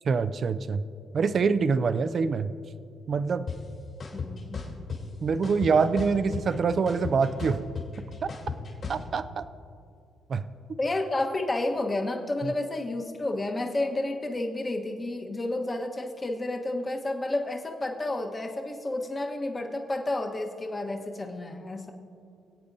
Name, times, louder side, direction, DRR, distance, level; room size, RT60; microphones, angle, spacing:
voice 1, 0.0-0.8 1.1-2.5 3.1-3.5 5.2-7.7 8.0-8.3 8.9-9.4 10.3-10.4 12.4-12.5, right 5 dB, 50° right, 12 dB, 0.5 m, -25 dB
sound 1, 3.5-3.6 4.0-5.0 5.4-6.5 6.9-9.0, left 5 dB, 50° left, 3.0 m, -34 dB
voice 2, 4.1-4.6 10.8-21.9, left 2 dB, 25° left, 2 dB, 1.2 m, -31 dB
25.5 x 8.6 x 2.7 m, 2.4 s
cardioid pair, 90°, 0 cm